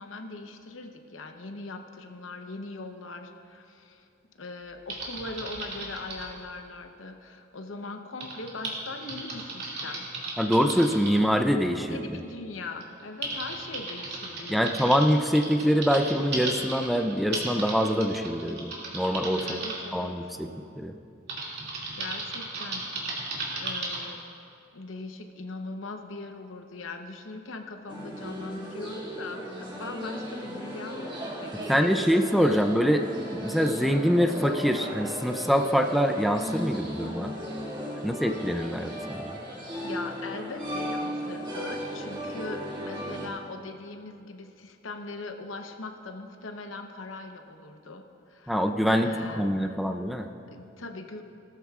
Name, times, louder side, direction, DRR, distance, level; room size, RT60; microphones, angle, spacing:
voice 1, 0.0-4.1 4.4-10.1 11.8-14.9 19.4-20.3 22.0-22.9 23.6-24.2 24.7-32.2 32.5-32.6 38.0-38.1 39.8-49.8 50.5-51.2, left 3 dB, 80° left, 5 dB, 0.8 m, -40 dB
Typing, 4.9-6.3 8.2-11.2 12.2-12.3 12.8-19.7 21.3-24.1, right 2 dB, 55° right, 2.4 m, -35 dB
voice 2, 10.4-12.0 14.5-19.6 19.9-20.5 20.8-20.9 31.7-37.3 38.0-39.4 48.5-50.3, equal, ahead, 5 dB, 0.4 m, -25 dB
sound 1, 27.9-43.3, equal, 25° right, 1.9 m, -36 dB
17.5 x 13.5 x 2.4 m, 2.7 s
head